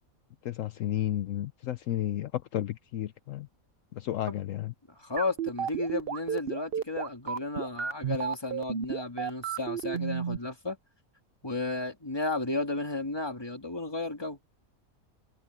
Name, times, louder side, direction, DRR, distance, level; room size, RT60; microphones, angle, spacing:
voice 1, 0.4-3.5 3.9-4.7, left 12 dB, 70° left, 1.0 m, -32 dB
voice 2, 5.0-10.8 11.4-14.4, left 2 dB, 15° left, 2.3 m, -33 dB
sound 1, 5.2-10.4, right 7 dB, 50° right, 0.9 m, -32 dB
omnidirectional pair, 1.5 m